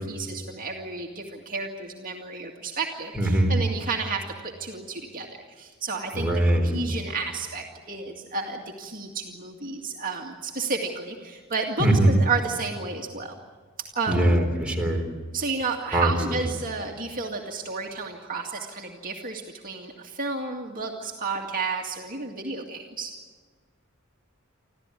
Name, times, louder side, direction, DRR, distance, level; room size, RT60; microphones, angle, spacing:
voice 1, 0.1-4.2 4.6-5.3 5.6-13.3 13.9-14.4 15.3-23.1, right 4 dB, 40° right, 1 dB, 2.2 m, -31 dB
voice 2, 3.1-3.6 6.1-6.8 11.8-12.1 14.1-15.0 15.9-16.4, right 1 dB, 5° right, -1 dB, 4.0 m, -21 dB
26.5 x 15.0 x 9.9 m, 1.5 s
head